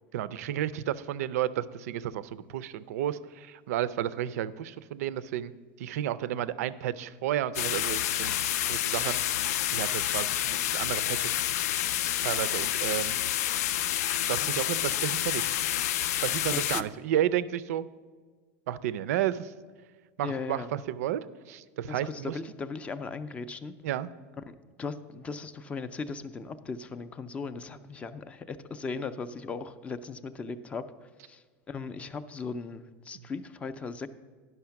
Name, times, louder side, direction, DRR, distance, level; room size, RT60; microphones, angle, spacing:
voice 1, 0.1-5.5 5.8-9.2 9.7-11.4 12.2-13.2 14.3-15.5 16.2-17.9 18.7-19.5 20.2-21.2 21.5-22.3 23.8-24.1, right 11 dB, 85° right, 16 dB, 0.4 m, -32 dB
sound 1, 7.5-16.8, left 12 dB, 90° left, 0.4 m, -29 dB
voice 2, 16.5-16.8 20.2-20.7 21.9-23.7 24.5-34.1, left 4 dB, 15° left, 12 dB, 0.3 m, -38 dB
11.0 x 5.7 x 5.8 m, 1.5 s
supercardioid pair, 155°, 8 cm